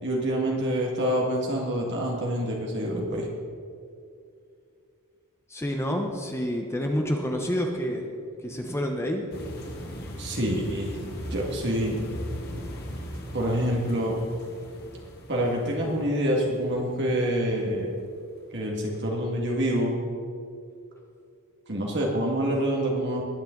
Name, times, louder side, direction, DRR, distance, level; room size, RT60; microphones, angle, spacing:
voice 1, 0.0-3.3 10.2-11.0 11.3-12.0 13.3-14.2 15.3-18.0 18.5-19.9 21.7-23.2, equal, 55° right, -2 dB, 2.0 m, -26 dB
voice 2, 5.5-8.1 8.4-9.2, equal, 10° left, 2 dB, 1.0 m, -28 dB
sound 1, 9.3-18.4 18.9-19.1 19.4-19.5, equal, 45° left, 2.2 m, -39 dB
20.5 x 9.0 x 3.9 m, 2.4 s
head